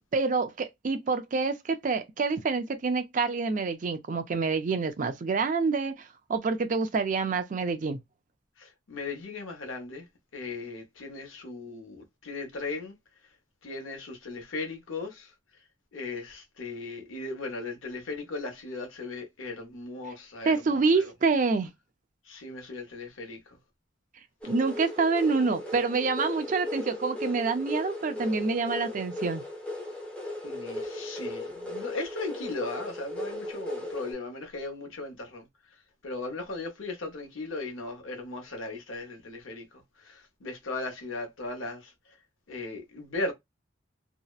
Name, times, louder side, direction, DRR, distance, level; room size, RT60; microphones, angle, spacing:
voice 1, 0.1-6.0 6.3-8.0 20.5-21.7 24.5-29.4, right 4 dB, 40° right, 0.4 m, -27 dB
voice 2, 8.6-10.1 10.3-13.0 13.6-15.3 15.9-21.1 22.3-23.6 30.4-35.5 36.0-41.9 42.5-43.3, left 3 dB, 80° left, 0.8 m, -37 dB
sound 1, 24.4-34.1, left 1 dB, 5° left, 0.6 m, -37 dB
2.7 x 2.0 x 2.2 m
head